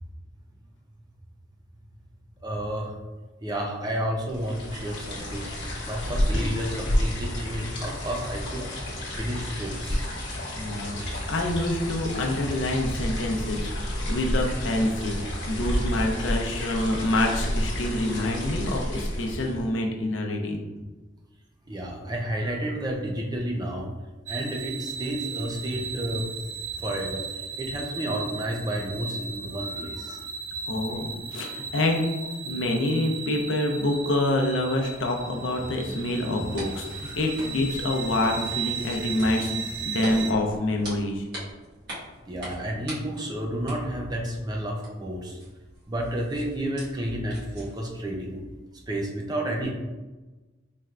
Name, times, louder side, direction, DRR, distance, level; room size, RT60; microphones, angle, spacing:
voice 1, 2.4-2.9 3.4-5.5 5.9-8.6 9.2-10.1 21.7-23.9 24.3-26.3 26.8-27.2 27.6-30.2 37.0-37.5 42.3-45.4 45.9-48.4 48.9-49.7, right 1 dB, 20° right, 0 dB, 0.5 m, -31 dB
sound 1, 4.3-19.7, equal, 70° left, 1.0 m, -30 dB
voice 2, 10.5-11.0 11.3-20.6 30.7-32.0 32.4-41.2, left 1 dB, 85° left, 2 dB, 0.6 m, -27 dB
sound 2, 24.3-40.3, right 5 dB, 90° right, 0.6 m, -36 dB
sound 3, 36.4-48.0, equal, 60° right, 1.5 m, -43 dB
4.3 x 3.2 x 2.4 m, 1.2 s
head